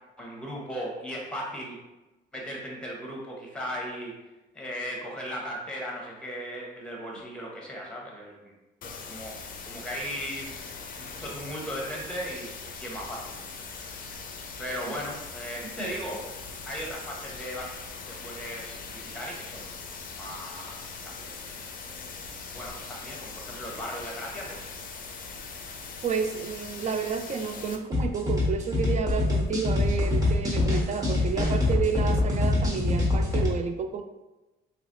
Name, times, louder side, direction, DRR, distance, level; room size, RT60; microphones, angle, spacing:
voice 1, 0.2-1.8 2.3-4.2 4.5-8.5 9.0-10.6 11.0-12.5 12.8-13.4 13.6-14.0 14.6-16.3 16.6-17.8 18.1-19.7 20.1-22.2 22.5-24.6, equal, 5° left, -2 dB, 1.0 m, -37 dB
sound 1, 8.8-27.8, left 4 dB, 45° left, 0.5 m, -41 dB
voice 2, 26.0-34.0, right 6 dB, 35° right, 7 dB, 0.4 m, -30 dB
sound 2, 27.9-33.5, left 2 dB, 15° right, 1.1 m, -25 dB
3.1 x 2.9 x 2.6 m, 1.1 s
cardioid pair, 90°, 20 cm